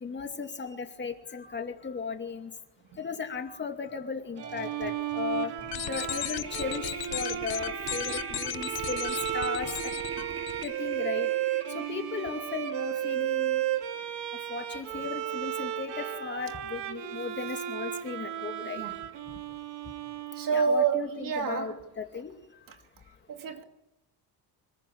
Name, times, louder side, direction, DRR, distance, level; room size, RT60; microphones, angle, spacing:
voice 1, 0.0-2.5 3.0-5.5 5.9-9.9 10.6-11.3 11.7-13.6 14.5-18.9 20.5-22.3, left 5 dB, 25° left, 2.5 m, -36 dB
sound 1, 3.9-4.0 4.3-14.6, right 4 dB, 35° right, 3.5 m, -42 dB
Bowed string instrument, 4.4-20.9, right 12 dB, 85° right, 2.6 m, -34 dB
sound 2, 5.6-10.7, left 15 dB, 60° left, 1.1 m, -36 dB
voice 2, 18.6-18.9 20.4-21.8 23.3-23.6, right 6 dB, 50° right, 2.9 m, -28 dB
26.0 x 21.5 x 8.6 m
cardioid pair, 150°, 41 cm